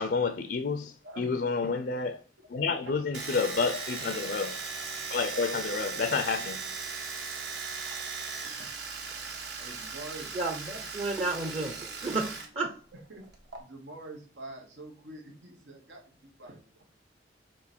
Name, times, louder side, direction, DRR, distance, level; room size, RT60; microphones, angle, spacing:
voice 1, 0.0-2.2 2.5-4.6 5.1-6.6, left 4 dB, 60° left, 0.5 m, -29 dB
Domestic sounds home sounds, 3.1-12.5 12.7-13.6, right 5 dB, 70° right, 1.5 m, -38 dB
voice 2, 9.6-10.3 13.1-13.3 13.6-17.0, right 2 dB, 90° right, 1.6 m, -46 dB
voice 3, 10.3-12.7, right 3 dB, 35° right, 0.8 m, -32 dB
6.1 x 3.9 x 4.3 m
head